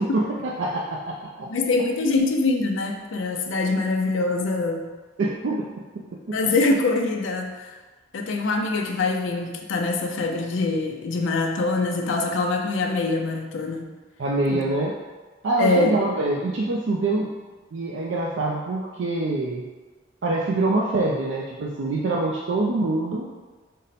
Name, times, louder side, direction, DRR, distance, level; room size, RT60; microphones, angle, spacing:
voice 1, 0.0-1.5 5.2-5.7 6.3-6.4 14.2-14.9 15.4-17.3 17.7-19.7 20.2-23.3, right 2 dB, 65° right, -2 dB, 0.4 m, -25 dB
voice 2, 1.5-4.9 6.3-7.7 8.1-13.9 14.5-14.7 15.6-16.0, left 3 dB, 75° left, 2 dB, 0.5 m, -24 dB
5.2 x 2.1 x 4.1 m, 1.3 s
head